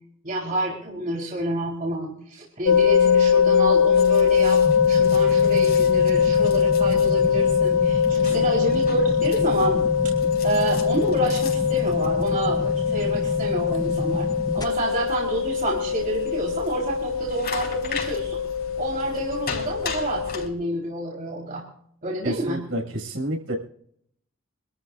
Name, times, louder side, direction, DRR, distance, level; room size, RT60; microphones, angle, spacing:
voice 1, 0.2-9.8 10.4-14.3 14.5-18.4 18.8-21.6 22.0-22.6, right 2 dB, 40° right, -3 dB, 4.3 m, -29 dB
sound 1, 2.7-20.5, left 7 dB, 70° left, 1.0 m, -22 dB
sound 2, 3.9-20.5, left 5 dB, 50° left, 5.0 m, -40 dB
sound 3, 4.6-14.6, left 1 dB, 20° left, 1.0 m, -31 dB
voice 2, 22.2-23.5, right 1 dB, 70° right, 0 dB, 6.6 m, -29 dB
26.5 x 13.5 x 2.6 m, 0.66 s
head